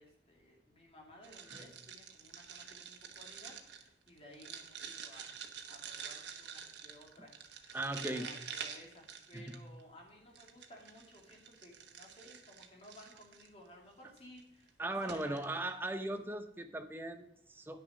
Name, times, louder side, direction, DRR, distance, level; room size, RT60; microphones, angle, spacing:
voice 1, 0.0-15.6 16.1-16.2, left 1 dB, 35° left, -1 dB, 2.4 m, -57 dB
sound 1, 1.2-9.8 10.4-13.5 14.2-14.4 14.7-14.8 15.0-15.4, right 7 dB, 90° right, 1.1 m, -48 dB
voice 2, 7.7-8.3 9.3-9.6 14.8-17.8, right 1 dB, 10° right, 7 dB, 0.7 m, -38 dB
10.0 x 6.6 x 5.0 m, 0.81 s
head